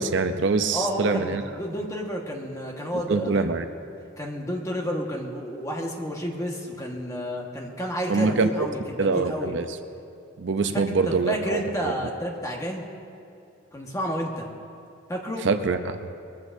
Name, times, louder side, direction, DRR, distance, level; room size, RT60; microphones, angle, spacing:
voice 1, 0.0-1.4 3.1-3.6 8.1-8.7 9.0-9.7 10.4-11.9 15.4-16.0, right 4 dB, 60° right, 9 dB, 0.6 m, -24 dB
voice 2, 0.7-3.5 4.2-9.5 10.7-12.9 13.7-14.5 15.1-15.5, equal, 15° left, 0 dB, 1.3 m, -31 dB
21.0 x 14.5 x 2.6 m, 2.7 s
head